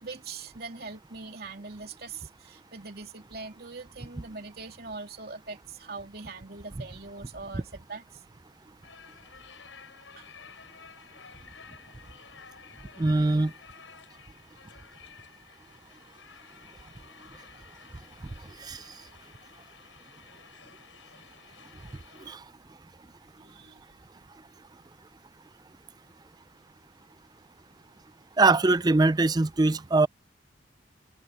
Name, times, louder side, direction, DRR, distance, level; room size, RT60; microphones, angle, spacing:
voice 1, 0.0-8.2 10.2-10.3 12.5-12.6 23.4-23.8, right 4 dB, 55° right, 3.2 m, -42 dB
sound 1, 8.8-22.3, left 6 dB, 85° left, 7.7 m, -52 dB
voice 2, 13.0-13.5 18.6-18.8 22.3-22.4 28.4-30.1, right 3 dB, 20° right, 0.4 m, -22 dB
head